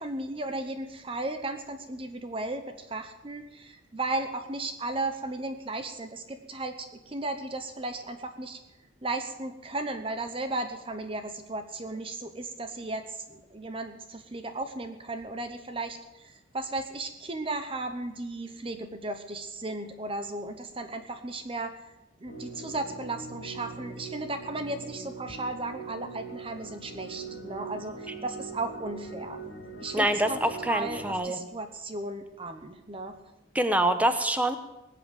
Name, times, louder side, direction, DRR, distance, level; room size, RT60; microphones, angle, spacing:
voice 1, 0.0-8.6 9.0-21.8 22.2-29.4 29.8-30.4 30.7-33.2, right 2 dB, 25° right, 8 dB, 0.9 m, -35 dB
sound 1, 22.3-31.1, right 3 dB, 65° left, 3.1 m, -42 dB
voice 2, 29.9-31.4 33.5-34.6, right 1 dB, 10° right, 9 dB, 1.0 m, -25 dB
20.0 x 7.9 x 7.9 m, 1.0 s
head